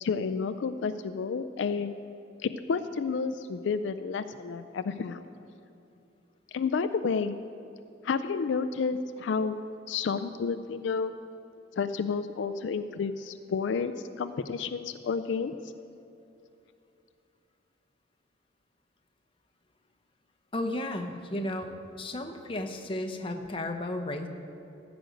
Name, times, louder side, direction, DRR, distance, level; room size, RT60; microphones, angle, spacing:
voice 1, 0.0-1.9 2.4-5.2 6.5-7.4 8.0-9.6 9.9-11.2 11.8-15.5, left 5 dB, 75° left, 11 dB, 0.4 m, -30 dB
voice 2, 20.5-21.7 22.0-24.3, left 1 dB, 30° left, 5 dB, 0.7 m, -33 dB
15.0 x 5.2 x 7.8 m, 2.7 s
head